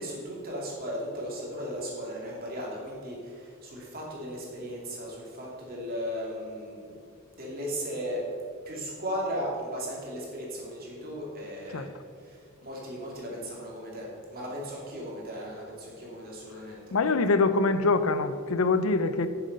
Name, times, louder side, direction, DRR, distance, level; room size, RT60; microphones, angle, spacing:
voice 1, 0.0-7.0 7.3-8.2 8.6-11.9 12.2-16.9, equal, 45° right, -3 dB, 2.7 m, -36 dB
voice 2, 16.9-19.3, left 3 dB, 80° left, 12 dB, 0.6 m, -24 dB
9.3 x 7.1 x 5.4 m, 2.3 s
head